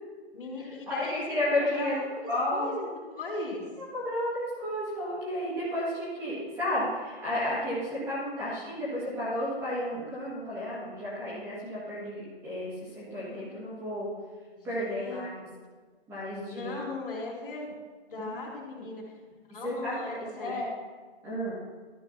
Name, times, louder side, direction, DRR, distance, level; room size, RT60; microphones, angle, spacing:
voice 1, 0.3-3.6 13.2-13.8 14.5-15.4 16.5-17.7 18.1-19.0 19.5-20.6, left 2 dB, 55° left, -2 dB, 3.0 m, -38 dB
voice 2, 1.0-1.9 2.3-2.7 3.9-14.1 14.6-15.5 16.1-16.7 18.2-18.4 18.7-18.8 19.6-20.7 21.2-21.5, left 1 dB, 10° right, -9 dB, 1.9 m, -32 dB
13.0 x 10.5 x 2.8 m, 1.5 s
hypercardioid pair, 170°, 33 cm